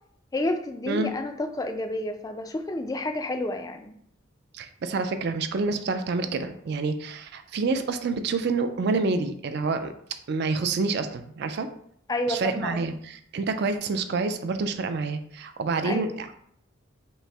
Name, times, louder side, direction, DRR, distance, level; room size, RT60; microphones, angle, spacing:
voice 1, 0.3-3.9 12.1-12.8 15.8-16.1, left 1 dB, 20° left, 6 dB, 0.3 m, -30 dB
voice 2, 4.5-9.9 10.3-11.7 12.3-16.3, right 3 dB, 55° right, 9 dB, 0.4 m, -28 dB
5.3 x 2.0 x 3.4 m, 0.66 s
head